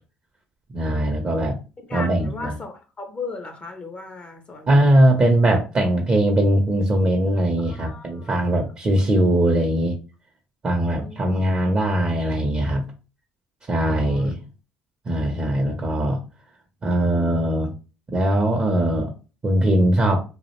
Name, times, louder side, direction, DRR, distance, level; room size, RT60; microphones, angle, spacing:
voice 1, 0.7-1.6 1.9-2.5 4.7-10.0 10.6-12.8 13.7-14.4 15.1-16.2 16.8-17.7 18.1-19.1 19.4-20.2, right 1 dB, 35° right, 0.6 m, -20 dB
voice 2, 1.9-4.8 7.7-8.5 10.8-11.4 13.9-14.3, left 3 dB, 35° left, 0.6 m, -37 dB
2.4 x 2.0 x 2.9 m
supercardioid pair, 75°, 4 cm